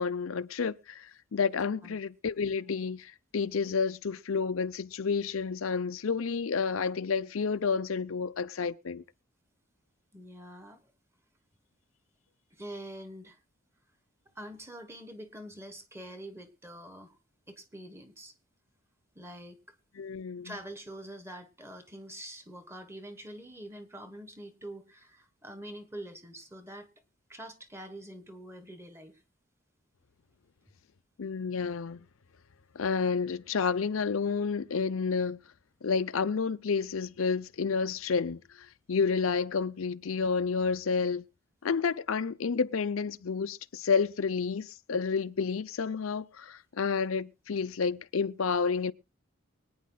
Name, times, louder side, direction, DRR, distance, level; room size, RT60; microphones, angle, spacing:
voice 1, 0.0-9.0 20.0-20.6 31.2-32.1 32.7-35.4 35.8-41.2 41.6-48.9, left 5 dB, 85° left, 0.6 m, -30 dB
voice 2, 10.1-10.9 12.5-13.4 14.3-17.2 17.5-18.3 19.1-19.6 20.4-26.9 27.3-29.2, right 1 dB, 15° right, 1.3 m, -45 dB
24.5 x 9.5 x 2.3 m
head